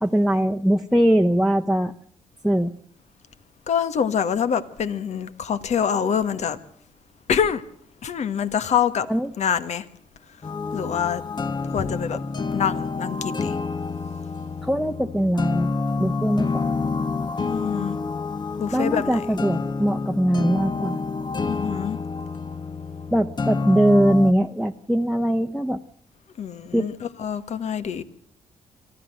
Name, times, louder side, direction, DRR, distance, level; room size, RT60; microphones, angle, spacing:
voice 1, 0.0-1.9 2.4-2.7 9.1-9.3 14.6-15.7 16.0-16.7 18.7-21.0 23.1-25.8 26.7-26.9, right 1 dB, ahead, 1.1 m, -21 dB
voice 2, 3.7-6.6 7.3-7.6 8.0-9.1 9.4-9.9 10.7-11.2 11.7-12.2 12.5-13.6 17.4-18.0 18.6-19.2 21.4-22.0 26.4-28.0, left 8 dB, 65° left, 1.6 m, -25 dB
sound 1, 10.4-24.3, left 4 dB, 35° left, 1.1 m, -28 dB
24.5 x 14.0 x 7.8 m
supercardioid pair, 55°, 13 cm